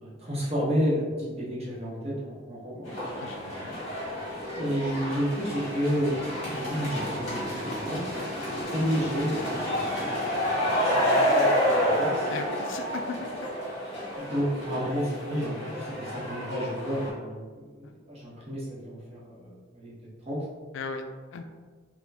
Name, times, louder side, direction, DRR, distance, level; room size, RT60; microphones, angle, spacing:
voice 1, 0.0-2.9 4.6-6.2 6.5-8.0 8.4-10.1 10.8-12.3 14.2-19.9 20.3-20.4, equal, 30° right, -6 dB, 0.9 m, -31 dB
sound 1, 2.8-17.1, equal, 35° left, 1.5 m, -29 dB
voice 2, 3.2-3.8 12.3-13.5 13.9-14.1 17.8-17.9 20.7-21.0 21.3-21.4, left 4 dB, 75° left, 5 dB, 0.3 m, -37 dB
4.2 x 2.2 x 2.7 m, 1.5 s
head